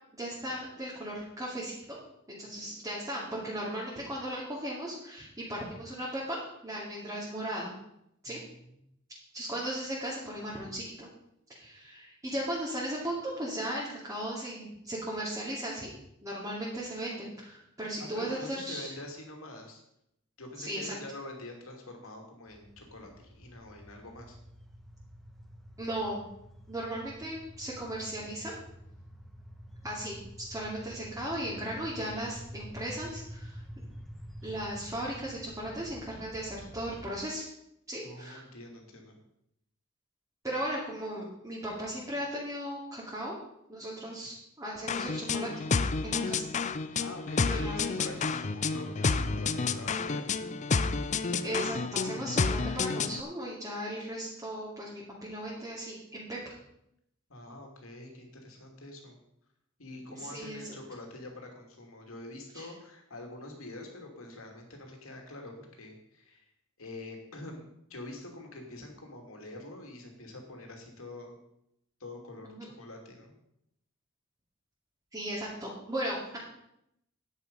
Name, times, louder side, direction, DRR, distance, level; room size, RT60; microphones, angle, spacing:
voice 1, 0.1-2.0 2.3-7.7 8.2-8.4 9.3-11.1 11.6-15.9 16.2-18.9 20.6-20.9 25.8-26.2 26.7-28.5 29.8-30.2 30.5-33.6 34.4-37.4 37.9-38.4 40.4-43.3 43.7-45.6 46.0-46.4 47.5-48.1 51.4-56.5 60.2-60.6 62.5-62.7 72.4-72.7 75.1-76.4, right 1 dB, 15° right, -6 dB, 2.5 m, -37 dB
voice 2, 8.2-8.5 18.0-19.8 20.4-24.4 38.0-39.2 47.0-50.3 57.3-59.2 59.8-66.5 66.8-71.4 72.0-73.3, left 2 dB, 85° left, 2 dB, 2.7 m, -45 dB
sound 1, 22.5-37.1, equal, ahead, 1.3 m, -48 dB
sound 2, 44.9-53.2, left 4 dB, 35° left, 0.5 m, -30 dB
10.5 x 9.1 x 5.4 m, 0.78 s
head